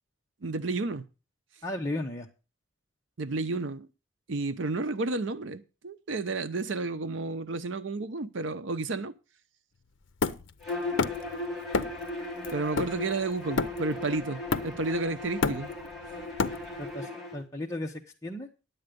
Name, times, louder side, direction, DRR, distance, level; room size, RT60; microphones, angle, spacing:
voice 1, 0.4-1.0 3.2-3.9 4.3-9.1 12.5-15.7, right 3 dB, 70° right, 0.7 m, -31 dB
voice 2, 1.6-2.3 16.8-17.9 18.2-18.5, left 1 dB, 15° left, 1.0 m, -34 dB
Hammer, 10.2-11.3 11.7-12.1 12.4-14.0 14.5-15.0 15.2-16.9, left 4 dB, 75° left, 0.6 m, -30 dB
Bowed string instrument, 10.6-17.4, left 2 dB, ahead, 3.5 m, -37 dB
10.5 x 8.0 x 5.2 m
head